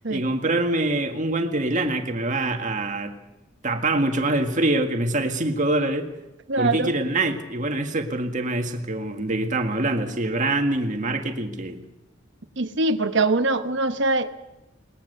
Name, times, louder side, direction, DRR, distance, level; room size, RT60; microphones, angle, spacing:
voice 1, 0.1-3.1 3.6-6.1 6.6-11.8, right 2 dB, 40° right, 5 dB, 1.8 m, -24 dB
voice 2, 6.5-6.9 12.6-14.5, right 2 dB, 60° right, 10 dB, 1.2 m, -23 dB
20.5 x 19.5 x 6.8 m, 0.95 s
head